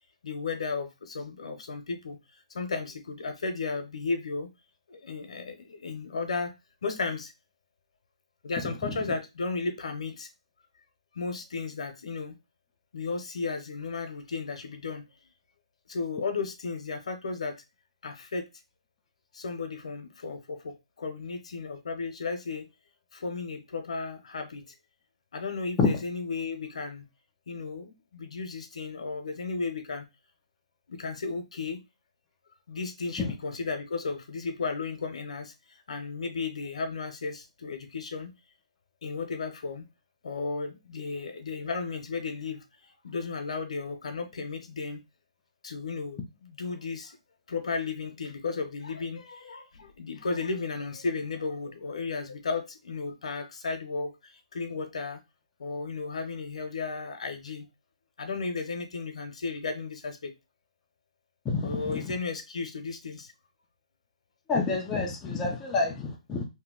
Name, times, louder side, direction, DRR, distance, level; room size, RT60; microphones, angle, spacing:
voice 1, 0.2-4.5 4.9-6.5 6.8-7.3 8.4-10.3 11.1-12.3 12.9-15.0 15.9-17.6 18.0-18.5 19.3-22.7 23.1-24.6 25.3-27.1 27.5-30.0 30.9-31.8 32.7-35.5 35.9-38.3 39.0-39.9 40.2-42.6 43.0-45.0 45.6-47.2 47.5-55.2 55.6-57.6 58.2-60.3 61.6-63.3, left 4 dB, 65° left, 0.8 m, -34 dB
voice 2, 8.6-9.0 25.8-25.9 33.2-33.3 61.5-62.1 64.5-66.4, left 4 dB, 5° left, 0.3 m, -28 dB
2.8 x 2.2 x 3.7 m
hypercardioid pair, 175°, 4 cm